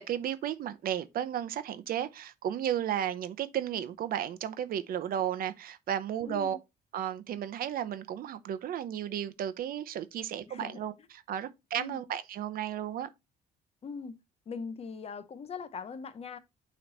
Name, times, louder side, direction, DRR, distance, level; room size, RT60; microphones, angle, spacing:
voice 1, 0.0-6.6 6.9-10.9 11.3-13.1, right 10 dB, 60° right, 0.8 m, -33 dB
voice 2, 6.3-6.6 10.5-10.8 11.7-12.0 13.8-14.2 14.5-16.4, left 5 dB, 35° left, 0.8 m, -41 dB
9.0 x 3.2 x 4.1 m
cardioid pair, 110°, 17 cm